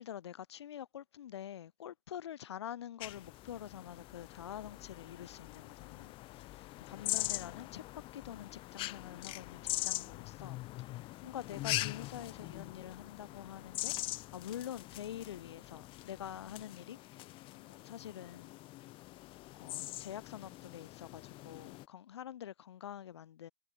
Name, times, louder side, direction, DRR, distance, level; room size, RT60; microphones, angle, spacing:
voice 1, 0.0-7.8 8.1-13.9 14.3-17.3 17.7-18.5 19.6-23.5, left 10 dB, 75° left, 1.5 m, -46 dB
sound 1, 3.0-21.9, left 19 dB, 35° left, 3.9 m, -42 dB
hypercardioid pair, 115°, 14 cm